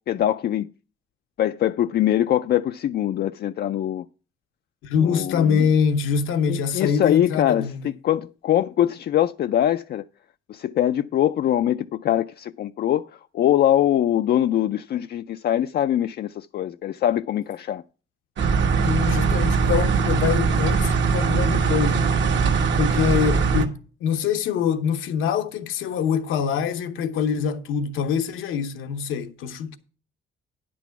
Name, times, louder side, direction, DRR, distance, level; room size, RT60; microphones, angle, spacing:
voice 1, 0.1-0.7 1.4-4.0 5.0-5.7 6.5-10.0 10.5-13.1 13.3-17.8, left 11 dB, 55° left, 0.4 m, -23 dB
voice 2, 4.8-7.9 18.8-22.1 22.7-29.8, left 7 dB, 85° left, 1.0 m, -24 dB
sound 1, 18.4-23.7, right 5 dB, 65° right, 1.4 m, -21 dB
9.8 x 6.2 x 5.8 m
cardioid pair, 90°, 20 cm